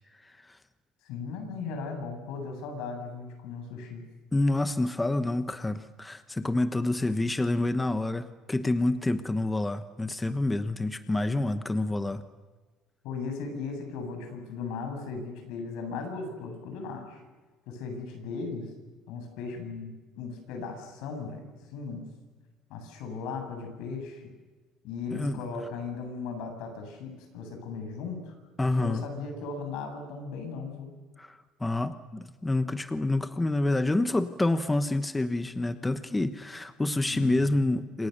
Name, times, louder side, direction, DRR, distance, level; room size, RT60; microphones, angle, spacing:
voice 1, 1.0-4.1 11.3-11.5 13.0-17.2 17.7-18.7 19.1-22.1 22.7-24.2 24.8-28.3 28.8-30.9, left 4 dB, 80° left, 5 dB, 7.6 m, -37 dB
voice 2, 4.3-12.2 25.1-25.4 28.6-29.0 31.2-38.1, left 2 dB, 10° left, 10 dB, 1.1 m, -28 dB
27.5 x 26.5 x 6.8 m, 1.3 s
cardioid pair, 130°, 0 cm